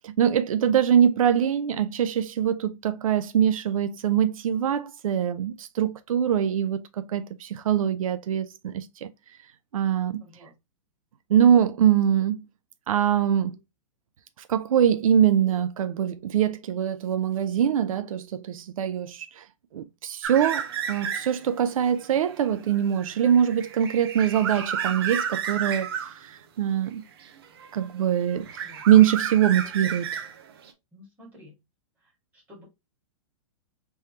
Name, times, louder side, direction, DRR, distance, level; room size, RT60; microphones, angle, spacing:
voice 1, 0.2-9.1 9.7-10.2 11.3-12.4 12.9-13.5 14.5-19.4 19.7-25.9 26.2-27.0 27.7-30.1, right 9 dB, 80° right, 0.5 m, -23 dB
voice 2, 10.2-10.5 28.6-28.8 29.6-29.7 30.9-31.6 32.0-32.6, left 1 dB, 10° right, 1.8 m, -51 dB
sound 1, 20.2-21.5 21.9-26.2 27.2-28.0 28.3-30.7, right 8 dB, 45° right, 0.7 m, -32 dB
3.6 x 3.2 x 2.8 m
hypercardioid pair, 175°, 17 cm